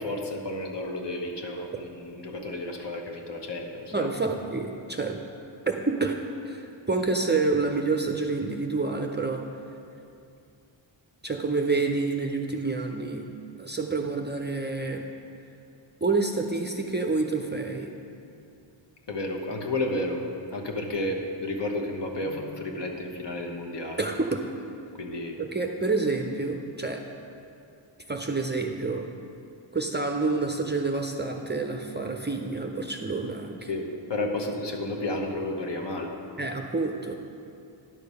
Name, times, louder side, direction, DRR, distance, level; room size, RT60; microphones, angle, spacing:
voice 1, 0.0-4.1 18.1-18.2 19.1-20.2 20.5-24.0 25.0-25.4 33.7-36.1, left 1 dB, 60° left, 2 dB, 1.1 m, -32 dB
voice 2, 3.9-5.2 5.7-6.2 6.4-9.4 11.2-13.2 13.6-15.0 16.0-17.9 24.0-24.4 25.4-27.0 28.1-29.1 29.7-33.7 36.4-37.2, right 3 dB, 25° right, 3 dB, 0.5 m, -28 dB
10.5 x 6.7 x 5.4 m, 2.6 s
wide cardioid pair, 145°, 49 cm